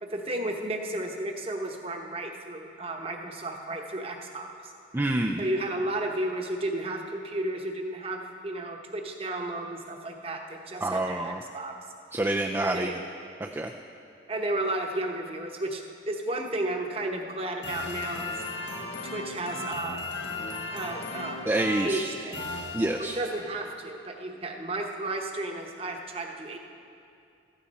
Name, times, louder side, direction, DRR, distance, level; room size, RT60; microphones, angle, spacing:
voice 1, 0.0-4.7 5.4-11.7 12.6-12.9 14.3-18.3 19.0-20.1 20.7-21.4 21.8-22.4 23.1-26.6, right 1 dB, 30° right, 3 dB, 1.0 m, -33 dB
voice 2, 4.9-5.4 10.8-11.4 12.1-12.9 13.4-13.7 21.5-22.1 22.7-23.2, right 1 dB, 15° right, 2 dB, 0.4 m, -27 dB
sound 1, 17.6-23.4, left 3 dB, 75° left, 1.3 m, -36 dB
15.0 x 14.0 x 4.2 m, 2.6 s
head